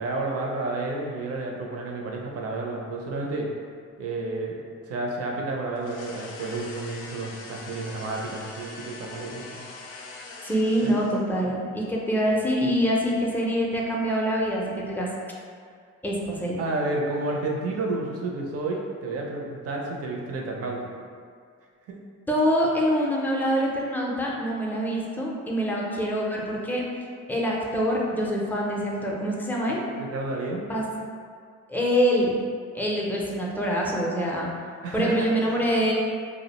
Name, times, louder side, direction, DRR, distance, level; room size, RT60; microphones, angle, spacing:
voice 1, 0.0-3.5 4.0-4.6 4.9-9.6 10.8-10.9 16.6-20.9 21.9-22.0 30.0-30.7 34.8-35.3, right 2 dB, 50° right, 0 dB, 0.5 m, -30 dB
sound 1, 5.8-11.4, left 3 dB, 85° left, 0.4 m, -42 dB
voice 2, 10.4-15.1 16.0-16.6 22.3-26.9 27.3-29.8 30.7-30.8 31.7-32.4 32.7-34.5 34.9-35.9, equal, 5° left, -3 dB, 0.4 m, -25 dB
2.4 x 2.0 x 2.8 m, 2.1 s
cardioid pair, 90°, 30 cm